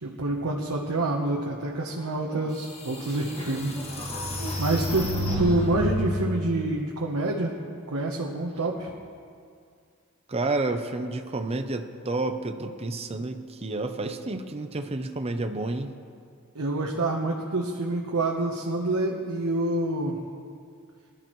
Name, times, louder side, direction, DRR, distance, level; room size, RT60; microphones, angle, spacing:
voice 1, 0.0-3.7 4.6-7.5 7.9-8.9 16.5-20.2, right 2 dB, 85° right, -1 dB, 1.1 m, -27 dB
sound 1, 2.3-2.4 2.9-6.1, right 1 dB, 30° left, 1.7 m, -30 dB
voice 2, 10.3-15.9, right 2 dB, 30° right, 6 dB, 0.6 m, -30 dB
20.5 x 12.0 x 3.1 m, 2.2 s
head